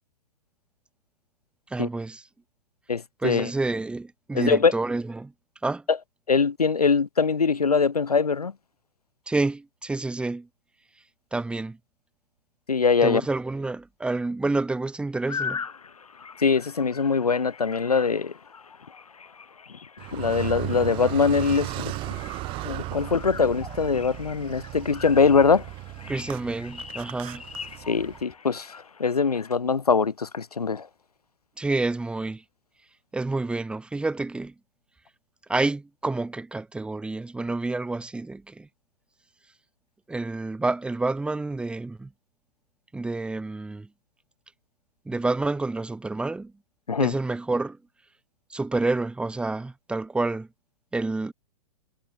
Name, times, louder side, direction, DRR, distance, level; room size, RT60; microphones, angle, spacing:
voice 1, 1.7-2.3 3.2-5.3 5.6-5.8 9.3-10.5 11.3-11.8 13.0-15.6 26.1-27.4 31.6-32.4 33.1-34.5 35.5-38.7 40.1-42.1 42.9-43.9 45.1-46.5 47.0-47.8 48.5-50.5 50.9-51.3, right 3 dB, 5° right, 1.9 m, -28 dB
voice 2, 2.9-3.5 4.3-4.7 5.9-6.0 6.3-8.5 12.7-13.2 16.4-18.3 20.1-21.7 22.6-25.6 27.9-28.7 29.0-30.9 46.9-47.1, left 5 dB, 85° left, 0.4 m, -22 dB
sound 1, 15.2-29.5, left 6 dB, 65° left, 7.5 m, -41 dB
Car, 20.0-28.2, right 20 dB, 25° right, 1.2 m, -36 dB
figure-of-eight pair, 110°, 19 cm